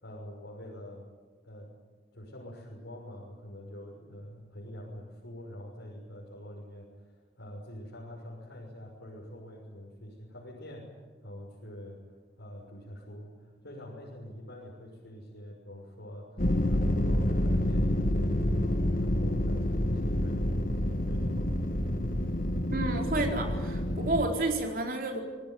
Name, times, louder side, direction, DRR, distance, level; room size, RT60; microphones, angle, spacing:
voice 1, 0.0-1.1 1.4-1.7 2.1-10.9 11.2-16.4 16.7-20.8 21.0-21.5, equal, 90° left, -3 dB, 6.4 m, -45 dB
sound 1, 16.4-24.3, left 1 dB, 45° left, 1.6 m, -28 dB
voice 2, 22.7-25.2, right 2 dB, 50° right, 2 dB, 4.4 m, -30 dB
26.5 x 20.5 x 9.7 m, 1.5 s
head